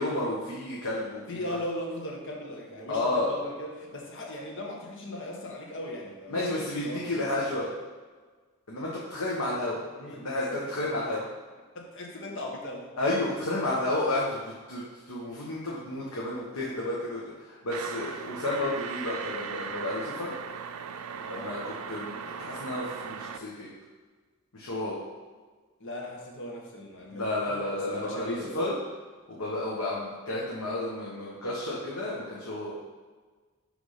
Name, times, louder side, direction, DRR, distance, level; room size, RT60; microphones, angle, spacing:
voice 1, 0.0-1.2 2.9-3.3 6.3-7.7 8.7-9.8 10.1-11.2 13.0-14.8 15.1-17.2 17.6-20.3 21.3-22.1 22.4-23.7 24.5-25.0 27.1-28.7 29.3-32.7, left 1 dB, 85° left, -6 dB, 1.1 m, -31 dB
voice 2, 1.3-7.3 9.9-10.5 10.8-11.2 11.7-13.2 21.2-21.6 25.8-28.6, left 1 dB, 60° left, 0 dB, 1.2 m, -38 dB
sound 1, 17.7-23.4, right 6 dB, 80° right, 0.4 m, -38 dB
6.3 x 3.5 x 5.7 m, 1.4 s
head